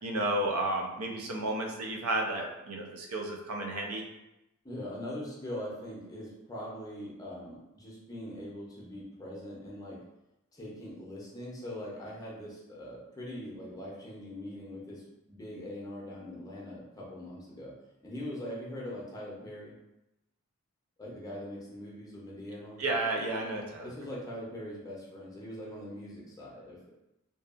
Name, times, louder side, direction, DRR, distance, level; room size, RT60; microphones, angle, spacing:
voice 1, 0.0-4.0 22.8-23.9, right 1 dB, 80° right, 1 dB, 0.5 m, -32 dB
voice 2, 4.6-10.0 10.5-17.8 18.0-19.7 21.0-22.9 23.8-26.9, left 1 dB, 15° left, -5 dB, 0.6 m, -42 dB
2.6 x 2.3 x 2.4 m, 0.91 s
head